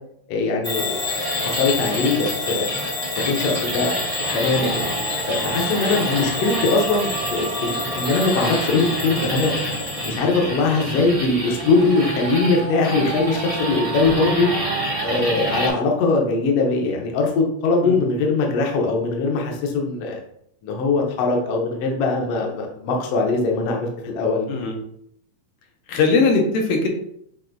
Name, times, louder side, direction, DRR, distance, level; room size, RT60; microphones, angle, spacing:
voice 1, 0.3-1.0 1.4-2.7 3.2-4.0 4.3-5.0 5.3-9.5 10.0-14.5 15.0-20.2 20.6-24.4, left 3 dB, 70° left, 1 dB, 1.6 m, -21 dB
Bell / Alarm, 0.6-10.2, left 3 dB, 25° left, 0.8 m, -28 dB
sound 1, 1.0-15.7, equal, 70° right, 0.3 m, -29 dB
sound 2, 4.5-15.8, right 5 dB, 90° right, 2.3 m, -32 dB
voice 2, 5.8-6.1 17.8-18.0 24.5-24.8 25.9-26.9, left 4 dB, 85° left, 2 dB, 2.3 m, -20 dB
7.6 x 2.6 x 2.6 m, 0.71 s
omnidirectional pair, 3.6 m